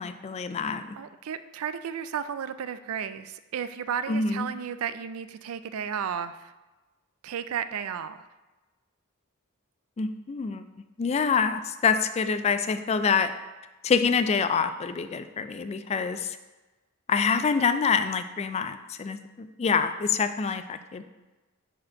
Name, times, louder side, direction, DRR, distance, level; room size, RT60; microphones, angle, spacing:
voice 1, 0.0-0.8 4.1-4.5 10.0-10.6 11.0-13.3 13.8-16.4 17.1-21.0, left 5 dB, 30° left, 10 dB, 0.3 m, -26 dB
voice 2, 1.0-6.5 7.2-8.3, right 8 dB, 90° right, 12 dB, 0.4 m, -33 dB
5.1 x 4.3 x 5.8 m, 1.1 s
head